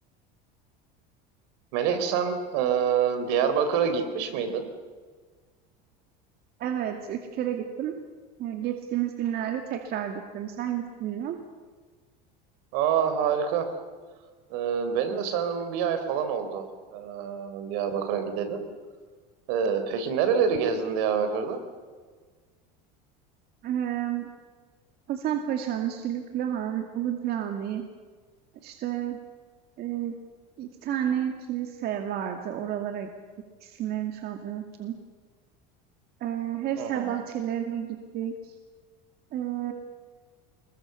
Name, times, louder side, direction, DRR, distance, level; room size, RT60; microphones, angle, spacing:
voice 1, 1.7-4.7 12.7-13.7 14.5-16.7 16.9-18.6 19.5-21.6 36.8-37.2, right 7 dB, 75° right, 9 dB, 4.3 m, -26 dB
voice 2, 6.6-8.0 8.4-11.4 23.6-24.3 25.1-27.8 28.6-29.2 29.8-30.1 30.6-33.1 33.6-35.0 36.2-37.9 38.1-38.5 39.3-39.7, right 10 dB, 50° right, 5 dB, 2.4 m, -30 dB
27.5 x 22.0 x 7.1 m, 1.5 s
supercardioid pair, 125°, 21 cm